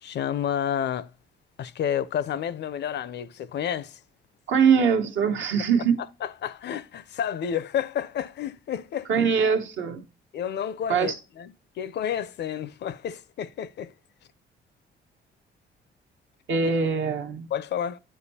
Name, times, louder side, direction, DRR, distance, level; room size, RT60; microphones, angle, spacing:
voice 1, 0.0-1.1 1.6-4.0 6.2-9.1 10.3-13.9 17.5-18.0, left 9 dB, 60° left, 0.5 m, -30 dB
voice 2, 4.5-6.0 9.1-10.0 10.9-11.2 16.5-17.5, right 6 dB, 75° right, 1.1 m, -22 dB
10.0 x 4.6 x 2.7 m
cardioid pair, 90°, 20 cm